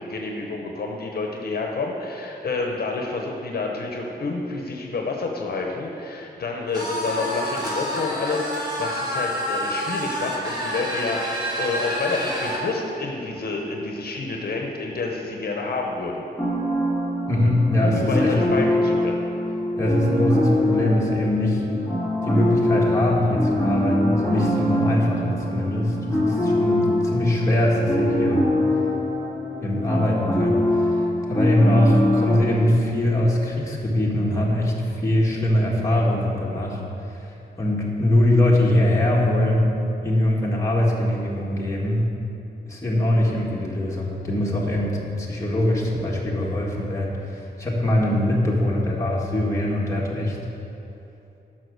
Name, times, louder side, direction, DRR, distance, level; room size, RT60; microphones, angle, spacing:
voice 1, 0.0-16.2 17.8-19.2, left 3 dB, 65° left, 1 dB, 1.0 m, -29 dB
sound 1, 6.7-12.6, equal, 25° right, 1.9 m, -28 dB
sound 2, 16.4-32.4, left 1 dB, ahead, 2.3 m, -23 dB
voice 2, 17.3-18.3 19.8-21.6 22.2-28.4 29.6-31.0 31.3-36.8 37.1-37.3 37.6-39.7 40.0-42.0 42.7-50.4, left 1 dB, 15° left, -4 dB, 1.7 m, -22 dB
11.0 x 6.1 x 6.6 m, 2.8 s
wide cardioid pair, 150°, 17 cm